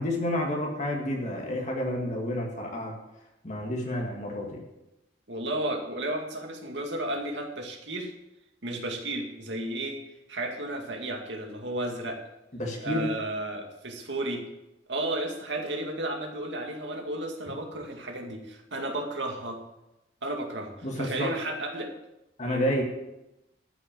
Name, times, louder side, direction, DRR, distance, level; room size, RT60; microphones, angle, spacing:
voice 1, 0.0-2.9 3.4-4.6 12.5-13.1 20.8-21.3 22.4-22.8, left 1 dB, 40° left, 0 dB, 1.9 m, -30 dB
voice 2, 5.3-8.1 8.6-10.0 10.3-12.2 12.8-14.4 14.9-19.6 20.2-21.9 22.4-22.7, right 1 dB, 70° right, 2 dB, 2.2 m, -33 dB
13.0 x 6.2 x 7.4 m, 0.92 s
head